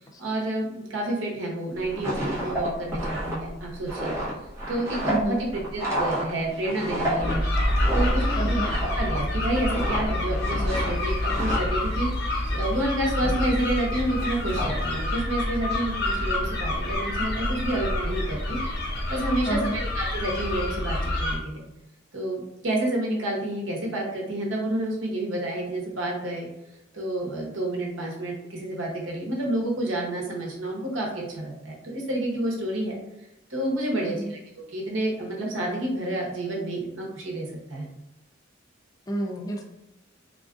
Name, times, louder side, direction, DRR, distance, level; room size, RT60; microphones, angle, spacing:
voice 1, 0.2-4.2 4.7-7.5 7.9-8.6 8.9-18.6 19.1-21.7 22.1-26.5 26.9-33.0 33.5-37.9, right 1 dB, 85° right, -2 dB, 0.9 m, -29 dB
sound 1, 1.8-9.2 9.5-10.0 10.3-11.6, right 1 dB, 15° right, 0.9 m, -30 dB
voice 2, 5.1-5.4 8.4-8.7 19.5-19.8 34.0-34.3 39.1-39.6, right 1 dB, 20° left, 1 dB, 0.4 m, -29 dB
sound 2, 7.2-21.4, left 1 dB, 60° left, 0.8 m, -27 dB
3.6 x 2.4 x 2.4 m, 0.90 s
head